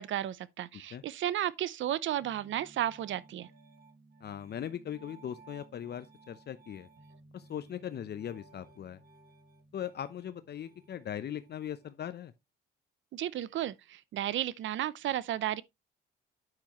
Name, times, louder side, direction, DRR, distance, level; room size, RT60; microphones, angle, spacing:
voice 1, 0.0-3.5 13.1-15.6, right 12 dB, 65° right, 0.7 m, -33 dB
Piano, 2.2-11.9, right 3 dB, 45° right, 4.2 m, -58 dB
voice 2, 4.2-6.9 7.3-9.0 9.7-12.3, left 9 dB, 50° left, 0.8 m, -39 dB
9.6 x 7.1 x 3.1 m
cardioid pair, 80°, 21 cm